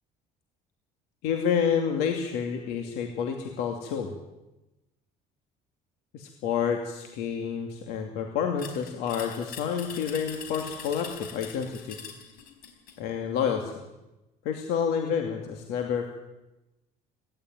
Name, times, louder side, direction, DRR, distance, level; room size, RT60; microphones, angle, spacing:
voice 1, 1.2-4.1 6.1-12.0 13.0-13.7 14.4-16.1, left 7 dB, 80° left, 3 dB, 2.7 m, -29 dB
sound 1, 8.6-13.0, left 7 dB, 60° left, 4.9 m, -43 dB
19.5 x 16.5 x 9.3 m, 0.99 s
cardioid pair, 145°, 16 cm